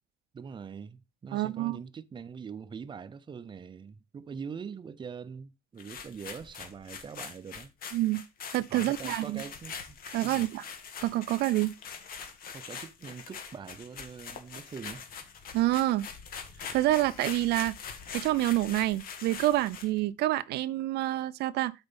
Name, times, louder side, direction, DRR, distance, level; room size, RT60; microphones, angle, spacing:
voice 1, 0.3-7.7 8.7-10.4 12.5-15.1, right 6 dB, 30° right, 0.6 m, -43 dB
voice 2, 1.3-1.8 7.9-8.2 8.5-9.4 10.1-10.6 11.0-11.7 15.5-16.1 16.7-17.7 18.1-21.7, right 16 dB, 75° right, 0.4 m, -27 dB
sound 1, 5.8-20.0, left 6 dB, 60° left, 1.7 m, -43 dB
8.0 x 4.4 x 5.3 m
cardioid pair, 110°, 17 cm